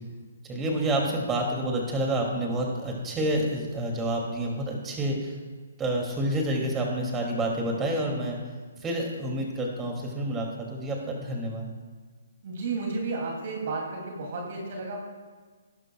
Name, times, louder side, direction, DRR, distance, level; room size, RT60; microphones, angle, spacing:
voice 1, 0.4-5.3 5.8-8.4 8.8-11.7, right 1 dB, 15° right, 0 dB, 2.6 m, -28 dB
voice 2, 12.4-15.0, right 3 dB, 50° right, -1 dB, 2.7 m, -32 dB
19.5 x 11.0 x 2.3 m, 1.5 s
hypercardioid pair, 145°, 0 cm